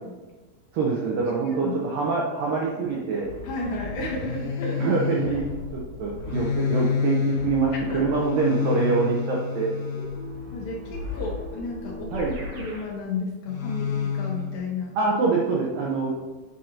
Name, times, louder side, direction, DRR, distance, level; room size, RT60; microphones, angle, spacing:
voice 1, 0.7-3.3 4.8-9.7 12.1-12.4 15.0-16.1, right 4 dB, 85° right, -3 dB, 1.9 m, -25 dB
voice 2, 1.4-1.8 2.8-2.9 3.4-4.8 7.9-8.1 8.4-8.8 10.0-10.3 10.5-12.1 12.6-15.0, left 3 dB, 80° left, -2 dB, 2.0 m, -33 dB
sound 1, 3.2-12.8 13.5-14.6, left 6 dB, 55° left, 2.7 m, -30 dB
Keyboard (musical), 10.2-12.9, right 1 dB, 60° right, 2.5 m, -42 dB
9.9 x 5.0 x 2.9 m, 1.2 s
omnidirectional pair, 5.3 m